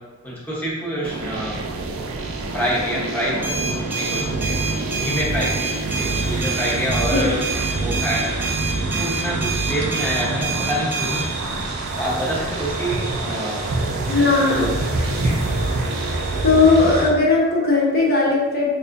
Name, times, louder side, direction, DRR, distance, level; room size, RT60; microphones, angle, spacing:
voice 1, 0.2-1.7 2.5-3.5 3.9-4.6 4.9-8.4 8.9-11.3 12.0-13.6 14.0-14.7 15.0-15.4, equal, 10° left, -7 dB, 0.8 m, -27 dB
sound 1, 1.0-17.0, right 3 dB, 80° right, 0.4 m, -27 dB
sound 2, 3.4-11.3, right 4 dB, 10° right, 0.3 m, -28 dB
sound 3, 5.9-17.1, right 1 dB, 35° right, 0.7 m, -29 dB
voice 2, 14.1-14.7 16.4-18.7, left 3 dB, 50° left, -4 dB, 0.8 m, -17 dB
5.3 x 2.5 x 2.5 m, 1.2 s
head